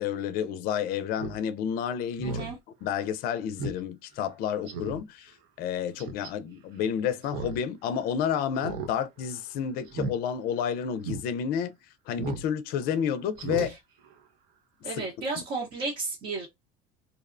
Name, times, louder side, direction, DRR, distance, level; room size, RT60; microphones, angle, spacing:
voice 1, 0.0-2.5 2.8-13.8 14.8-15.0 15.4-15.5, left 8 dB, 60° left, 0.4 m, -30 dB
Speech synthesizer, 1.1-1.4 1.8-1.9 2.2-2.5 2.9-3.0 3.6-3.8 4.1-4.2 4.7-5.0 6.0-6.3 7.2-7.6 7.9-8.0 8.6-8.9 9.2-9.4 9.9-10.1 10.6-10.7 11.0-11.2 12.2-12.5 12.8-12.9 13.3-13.7 14.0-14.1, right 4 dB, 75° right, 0.7 m, -35 dB
voice 2, 2.2-2.6 13.6-13.7 14.8-16.5, right 3 dB, 50° right, 0.9 m, -33 dB
2.7 x 2.0 x 2.4 m
supercardioid pair, 105°, 18 cm